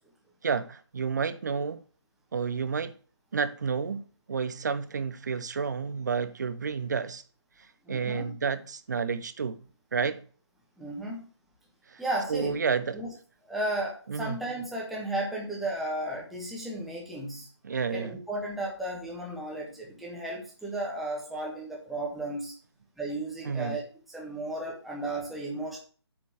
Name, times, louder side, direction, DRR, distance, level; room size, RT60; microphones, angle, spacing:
voice 1, 0.4-1.8 2.3-2.9 3.3-7.2 7.9-9.6 9.9-10.2 11.9-12.0 12.3-13.0 14.1-14.4 17.6-18.1 23.4-23.8, right 5 dB, 40° right, 0.8 m, -30 dB
voice 2, 7.8-8.3 10.8-11.3 12.0-12.6 12.9-13.1 13.5-17.5 17.9-22.5 23.0-23.8 24.1-25.8, right 1 dB, ahead, 1.5 m, -34 dB
8.6 x 4.4 x 7.0 m
figure-of-eight pair, 150°, 14 cm